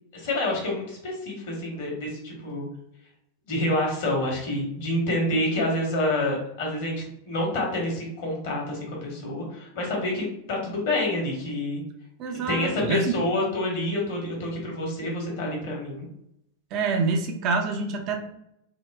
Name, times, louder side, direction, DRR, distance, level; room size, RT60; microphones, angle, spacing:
voice 1, 0.1-2.7 3.5-7.0 7.3-11.8 12.3-16.1, left 1 dB, 55° left, -1 dB, 1.2 m, -28 dB
voice 2, 12.2-13.2 16.7-18.2, right 4 dB, 40° right, 3 dB, 0.4 m, -26 dB
3.5 x 2.2 x 2.2 m, 0.78 s
figure-of-eight pair, 90°, 0 cm